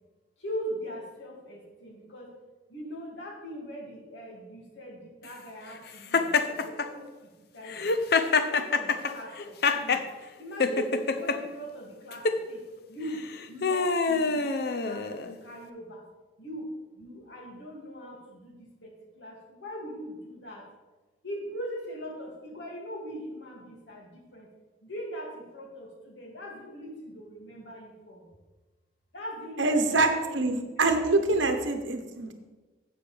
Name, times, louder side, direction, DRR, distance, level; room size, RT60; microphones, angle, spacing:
voice 1, 0.4-2.3 2.7-8.0 8.3-10.0 10.4-16.0 16.4-20.7 21.2-24.5 24.8-28.3 29.1-31.6, equal, 75° left, -1 dB, 2.4 m, -41 dB
Laughter, 6.1-6.9 7.7-10.1 10.6-11.4 12.1-12.4 13.1-15.3, left 4 dB, 55° left, 0.6 m, -26 dB
voice 2, 29.6-32.3, right 2 dB, 85° right, 6 dB, 1.1 m, -25 dB
11.5 x 8.0 x 3.4 m, 1.2 s
head